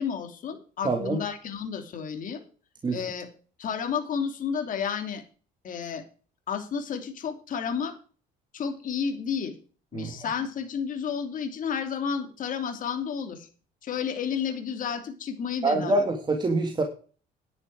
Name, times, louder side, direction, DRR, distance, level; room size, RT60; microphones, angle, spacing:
voice 1, 0.0-2.4 2.9-3.3 3.6-5.2 5.6-6.0 6.5-7.9 8.5-9.5 9.9-13.5 13.8-16.1, left 7 dB, 50° left, 6 dB, 3.0 m, -31 dB
voice 2, 0.8-1.2 2.8-3.0 9.9-10.2 15.6-16.8, right 3 dB, 25° right, 4 dB, 2.1 m, -25 dB
11.0 x 9.6 x 4.8 m, 0.39 s
cardioid pair, 110°, 17 cm